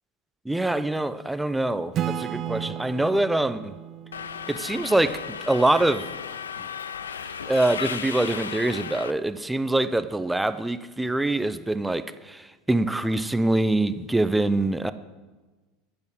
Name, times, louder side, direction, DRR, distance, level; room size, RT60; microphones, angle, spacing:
voice 1, 0.4-3.7 4.5-6.1 7.5-14.9, right 2 dB, 5° right, 12 dB, 0.7 m, -24 dB
Acoustic guitar / Strum, 1.9-5.5, right 10 dB, 40° right, 0.5 m, -34 dB
Subway metro underground, 4.1-9.1, left 7 dB, 80° left, 0.5 m, -35 dB
10.5 x 8.8 x 7.4 m, 1.3 s
figure-of-eight pair, 80°, 0 cm